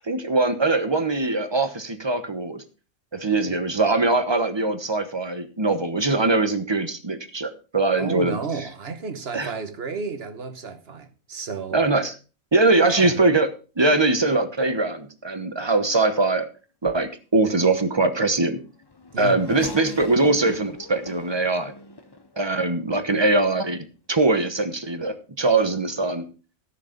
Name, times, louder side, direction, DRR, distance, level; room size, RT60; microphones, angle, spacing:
voice 1, 0.0-2.6 3.1-8.4 9.3-9.5 11.7-12.1 12.5-13.5 13.8-16.5 16.8-18.6 19.2-21.7 22.4-23.8 24.1-26.2, right 2 dB, 20° right, 1.1 m, -22 dB
voice 2, 8.0-11.8 12.7-13.2 19.1-19.4, right 5 dB, 50° right, 1.4 m, -32 dB
Race car auto racing / Accelerating revving vroom, 18.5-23.0 23.7-23.8 24.9-25.1, left 2 dB, 20° left, 0.7 m, -40 dB
13.5 x 6.6 x 5.2 m
omnidirectional pair, 1.4 m